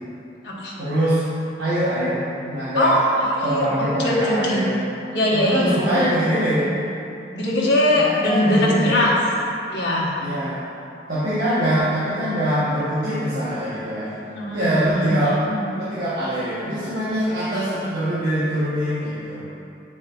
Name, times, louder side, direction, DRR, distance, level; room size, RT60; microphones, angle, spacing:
voice 1, 0.8-1.2 1.6-3.0 3.4-4.7 5.3-6.7 7.9-9.0 10.2-10.6 11.1-14.1 14.5-15.4 15.7-19.5, right 1 dB, 60° right, -12 dB, 1.2 m, -23 dB
voice 2, 2.8-4.6 5.1-5.8 7.3-9.1 9.7-10.1 14.3-15.1 15.4-15.7, left 1 dB, 75° left, -4 dB, 1.2 m, -21 dB
9.6 x 4.7 x 2.5 m, 2.7 s
head